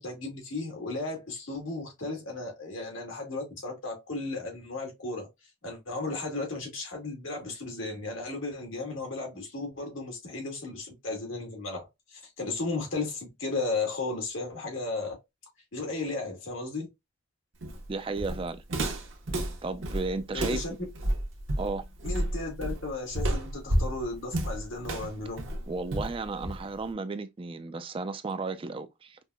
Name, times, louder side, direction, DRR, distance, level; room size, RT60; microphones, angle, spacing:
voice 1, 0.0-5.3 5.6-15.2 15.7-16.9 20.3-20.7 22.0-25.4, left 3 dB, 80° left, 1.6 m, -35 dB
Walk footsteps, 17.6-26.9, right 1 dB, 75° right, 0.9 m, -31 dB
voice 2, 17.9-18.6 19.6-20.6 21.6-21.8 25.7-29.2, right 3 dB, 25° right, 0.4 m, -34 dB
5.2 x 2.1 x 2.3 m
head